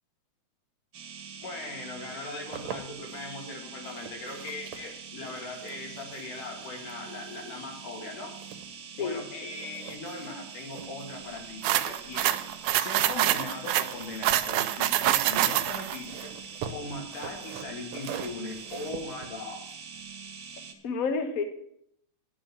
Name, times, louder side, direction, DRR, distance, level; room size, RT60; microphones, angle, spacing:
sound 1, 0.9-20.7, right 6 dB, 50° right, 2.1 m, -44 dB
voice 1, 1.4-8.3 9.0-12.4 12.7-16.3 16.7-19.6, left 2 dB, 85° left, 2 dB, 3.9 m, -39 dB
sound 2, 2.1-3.3 3.8-9.2 9.5-14.2 15.2-20.7, right 7 dB, 70° right, 2.3 m, -45 dB
voice 2, 9.0-9.5 20.8-21.4, left 5 dB, 60° left, 7 dB, 0.9 m, -30 dB
sound 3, 11.6-16.0, right 13 dB, 90° right, 2.2 m, -26 dB
11.5 x 6.5 x 9.0 m, 0.71 s
omnidirectional pair, 3.6 m